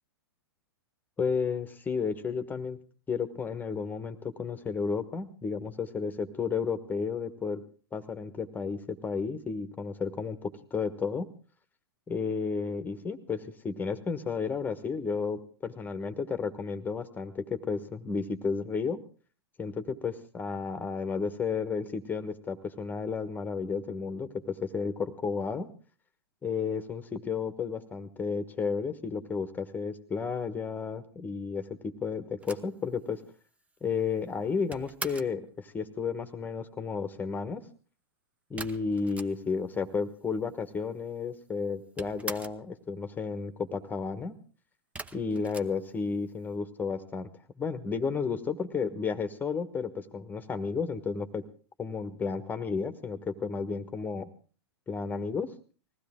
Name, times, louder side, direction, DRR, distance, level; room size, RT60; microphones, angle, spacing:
voice 1, 1.2-2.8 3.1-7.6 7.9-11.3 12.1-19.0 19.6-25.7 26.4-33.2 33.8-37.6 38.5-44.3 45.1-47.3 47.6-51.4 51.8-54.3 54.9-55.5, left 5 dB, 15° left, 11 dB, 1.3 m, -32 dB
sound 1, 32.4-35.4 38.6-39.7 40.0-40.1 40.3-41.1 41.4-42.7 44.9-46.4, right 3 dB, 10° right, 0.8 m, -43 dB
20.5 x 15.5 x 3.6 m, 0.38 s
hypercardioid pair, 115°, 13 cm